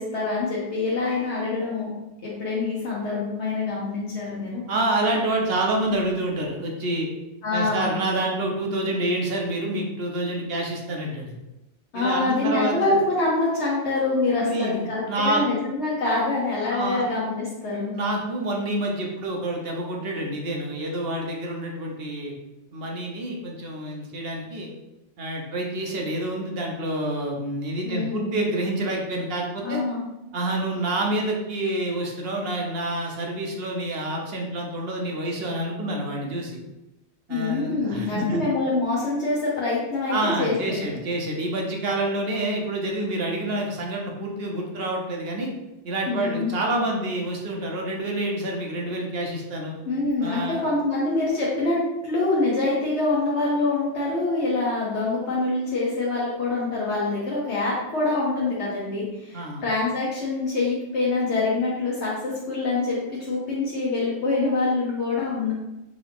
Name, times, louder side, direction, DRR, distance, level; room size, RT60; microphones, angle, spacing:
voice 1, 0.0-1.9 2.2-4.6 7.4-8.0 11.9-17.9 27.8-28.4 29.6-30.0 37.3-40.9 46.1-46.5 49.9-65.5, left 3 dB, 75° left, -6 dB, 1.2 m, -25 dB
voice 2, 4.7-7.1 7.5-11.4 11.9-13.0 14.4-15.4 16.7-17.0 17.9-22.3 22.7-24.7 25.2-29.8 30.3-36.6 37.3-38.4 40.1-45.5 45.8-49.8 50.2-50.6 59.3-59.6, right 1 dB, 65° right, 0 dB, 0.9 m, -28 dB
3.8 x 2.8 x 3.4 m, 0.97 s
omnidirectional pair, 1.2 m